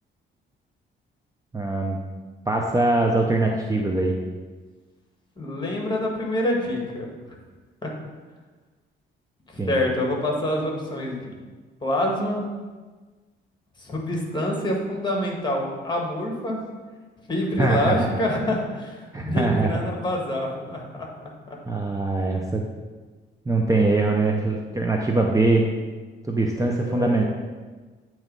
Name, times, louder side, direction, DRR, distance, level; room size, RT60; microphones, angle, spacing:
voice 1, 1.5-2.0 2.5-4.2 9.6-9.8 17.6-18.1 19.1-19.8 21.7-22.6 23.5-25.7 26.3-27.2, right 2 dB, 15° right, 1 dB, 0.7 m, -22 dB
voice 2, 5.4-7.1 7.8-7.9 9.5-11.4 11.8-12.4 13.8-16.6 17.3-21.1 26.6-27.3, left 1 dB, 20° left, 0 dB, 1.7 m, -26 dB
8.7 x 3.1 x 5.3 m, 1.3 s
cardioid pair, 90°, 20 cm